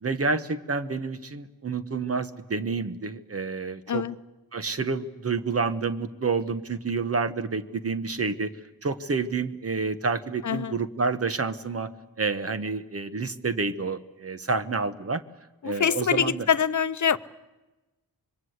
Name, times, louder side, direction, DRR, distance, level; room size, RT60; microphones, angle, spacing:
voice 1, 0.0-4.0 4.5-8.5 8.8-11.9 12.2-15.2 15.6-16.5, right 4 dB, 35° right, 12 dB, 1.3 m, -29 dB
voice 2, 15.6-17.2, left 7 dB, 45° left, 14 dB, 0.8 m, -24 dB
25.5 x 23.0 x 8.2 m, 1.1 s
wide cardioid pair, 155°, 40 cm